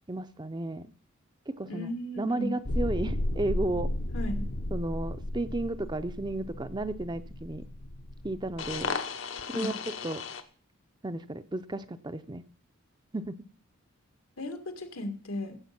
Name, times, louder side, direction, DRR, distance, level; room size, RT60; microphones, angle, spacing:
voice 1, 0.1-0.9 1.5-1.9 2.2-3.9 4.7-7.7 8.2-9.0 9.5-9.8 10.0-10.2 11.0-12.4 13.1-13.4, right 2 dB, 20° right, 11 dB, 0.6 m, -33 dB
voice 2, 1.7-2.5 4.1-4.5 9.5-9.8 14.4-15.6, left 1 dB, 85° left, 7 dB, 2.1 m, -36 dB
sound 1, 2.6-10.4, left 2 dB, 70° left, 1.1 m, -34 dB
15.5 x 7.7 x 5.9 m, 0.43 s
head